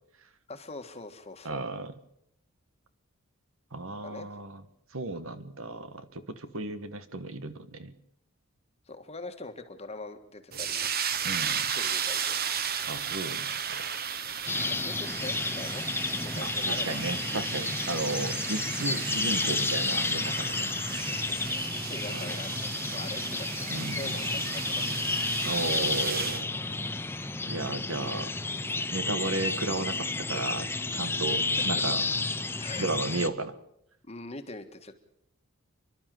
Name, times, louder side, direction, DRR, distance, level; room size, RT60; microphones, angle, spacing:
voice 1, 0.5-1.6 4.0-4.3 8.9-10.9 11.6-12.4 14.7-15.9 16.2-17.1 17.8-18.0 21.0-21.6 21.9-25.0 32.6-32.9 34.0-35.0, left 2 dB, 30° left, 7 dB, 1.6 m, -43 dB
voice 2, 1.4-1.9 3.7-4.6 4.9-7.9 11.2-11.7 12.9-13.8 16.3-20.7 22.1-22.4 23.7-24.5 25.4-26.5 27.5-28.3 28.9-32.0 32.8-33.6, right 2 dB, 65° right, 12 dB, 1.4 m, -34 dB
sound 1, 10.5-26.4, right 7 dB, 45° right, 1.1 m, -34 dB
sound 2, 14.5-33.3, left 3 dB, 10° left, 0.7 m, -31 dB
29.5 x 12.0 x 7.6 m, 0.77 s
head